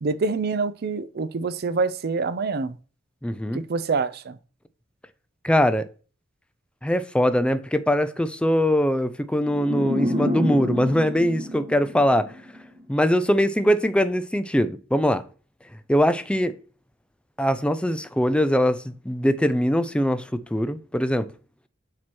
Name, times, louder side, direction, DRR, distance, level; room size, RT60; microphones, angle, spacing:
voice 1, 0.0-2.8 3.5-4.4, right 4 dB, 55° right, 0.5 m, -26 dB
voice 2, 3.2-3.6 5.4-5.9 6.8-12.3 12.9-15.2 15.9-16.6 17.4-21.3, equal, 5° left, 0.4 m, -22 dB
sound 1, 9.5-12.6, left 1 dB, 35° right, 2.4 m, -28 dB
7.4 x 2.9 x 6.1 m
head